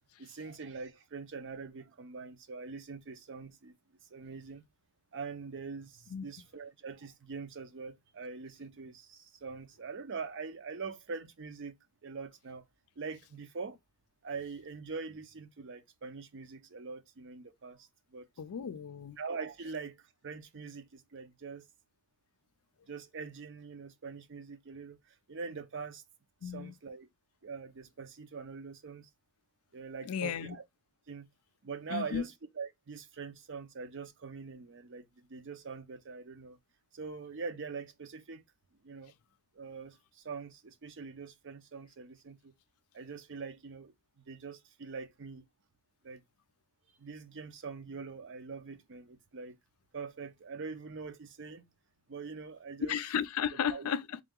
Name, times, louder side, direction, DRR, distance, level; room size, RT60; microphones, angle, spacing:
voice 1, 0.2-3.7 4.1-4.6 5.1-11.7 12.0-12.6 13.0-13.8 14.2-18.3 19.2-21.7 22.9-26.0 26.4-27.1 27.4-29.1 29.7-30.6 31.1-31.3 31.6-36.6 36.9-38.4 38.8-39.1 39.5-42.5 42.9-45.5 46.0-46.2 47.0-49.6 49.9-51.7 52.1-52.9 53.5-53.9, right 4 dB, 55° right, 0.6 m, -43 dB
voice 2, 18.4-19.2 26.4-26.7 30.0-30.6 31.9-32.3 52.8-54.2, left 8 dB, 75° left, 0.4 m, -34 dB
3.7 x 2.8 x 3.6 m
head